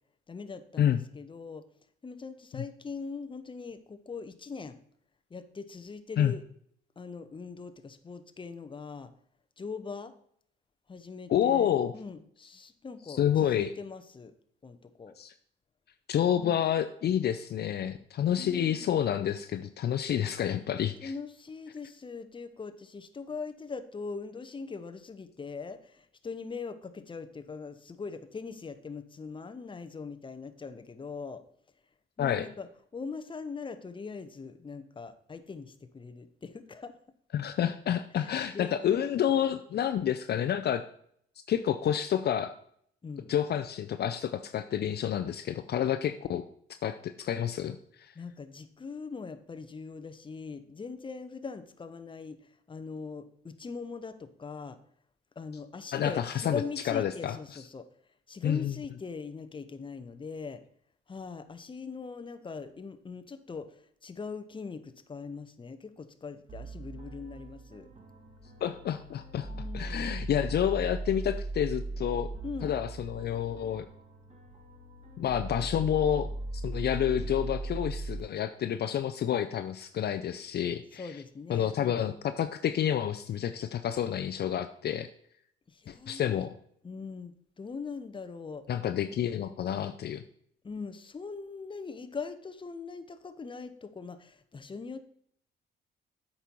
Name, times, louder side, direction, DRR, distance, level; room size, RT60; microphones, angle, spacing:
voice 1, 0.3-1.6 2.0-4.8 5.3-6.4 7.0-9.1 9.6-10.1 10.9-14.3 14.6-15.1 16.3-16.6 18.4-19.0 21.0-31.4 32.2-37.0 38.2-39.1 43.0-43.3 48.1-52.4 52.7-54.8 55.4-57.9 58.3-60.6 61.1-67.9 69.5-70.1 72.4-72.7 80.9-82.1 85.7-86.5 86.8-88.6 90.6-95.0, left 4 dB, 25° left, 10 dB, 0.8 m, -41 dB
voice 2, 11.3-11.9 13.1-13.7 15.2-15.3 16.1-21.1 32.2-32.5 37.3-40.8 41.5-42.5 43.3-46.4 46.8-48.1 55.9-57.4 58.4-58.8 68.6-69.5 69.7-72.3 72.6-73.9 75.2-76.3 76.6-81.1 81.5-85.1 85.9-86.5 88.7-90.2, left 10 dB, 55° left, 9 dB, 0.5 m, -29 dB
sound 1, 66.5-78.2, right 2 dB, 35° right, 1.5 m, -38 dB
8.2 x 5.5 x 4.5 m, 0.66 s
cardioid pair, 90°, 20 cm